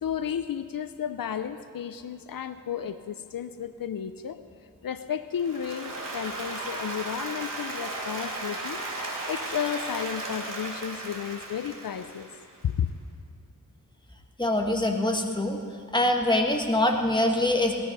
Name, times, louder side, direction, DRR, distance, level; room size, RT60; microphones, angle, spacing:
voice 1, 0.0-4.4 4.8-8.8 9.3-12.3 12.6-12.9, left 8 dB, 80° left, 11 dB, 0.6 m, -32 dB
Applause, 5.4-12.6, right 2 dB, 60° right, 3.3 m, -35 dB
voice 2, 14.4-15.6 15.9-17.7, left 1 dB, 15° left, 2 dB, 1.7 m, -24 dB
17.5 x 13.0 x 5.4 m, 2.3 s
wide cardioid pair, 75°, 34 cm